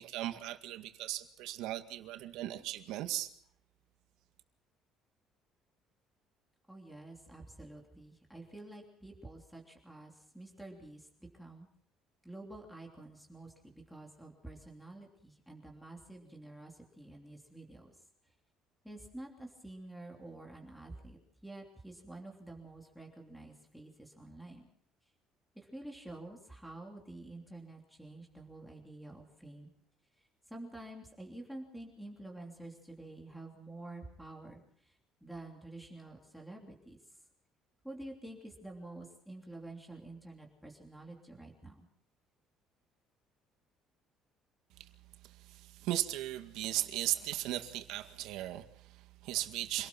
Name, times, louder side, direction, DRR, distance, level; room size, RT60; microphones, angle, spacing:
voice 1, 0.0-3.3 44.8-44.9 45.2-49.9, right 14 dB, 85° right, 2.0 m, -37 dB
voice 2, 6.7-11.1 11.3-11.7 12.2-17.9 18.8-21.2 21.4-24.6 25.5-29.7 30.2-37.0 37.8-41.9, right 2 dB, ahead, 3.1 m, -49 dB
26.5 x 18.5 x 6.0 m
cardioid pair, 150°, 0 cm